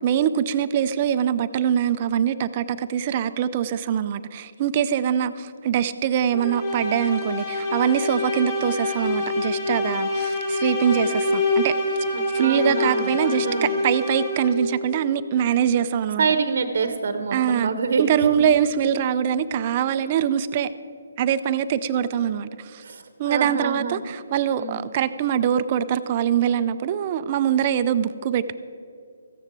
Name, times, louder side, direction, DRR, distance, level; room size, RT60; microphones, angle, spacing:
voice 1, 0.0-11.7 12.3-16.3 17.3-17.7 18.0-20.7 21.2-22.8 23.2-28.5, right 9 dB, 35° right, 13 dB, 0.4 m, -23 dB
sound 1, 6.3-14.7, left 2 dB, 25° left, 1.6 m, -26 dB
voice 2, 12.1-13.7 16.2-18.0 18.4-18.5 22.8-24.0 24.6-24.8, right 5 dB, 60° right, 9 dB, 0.8 m, -26 dB
14.5 x 9.7 x 4.5 m, 2.5 s
hypercardioid pair, 155°, 0 cm